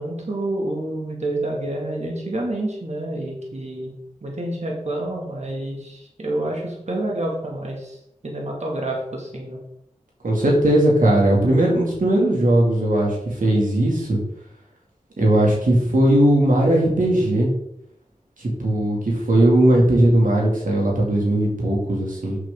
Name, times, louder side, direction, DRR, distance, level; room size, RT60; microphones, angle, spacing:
voice 1, 0.0-8.0 8.2-9.6, right 1 dB, 60° right, -1 dB, 2.2 m, -28 dB
voice 2, 10.2-14.2 15.2-17.5 18.4-22.4, right 1 dB, 85° right, -2 dB, 2.3 m, -18 dB
7.7 x 7.7 x 3.7 m, 0.75 s
cardioid pair, 40°, 13 cm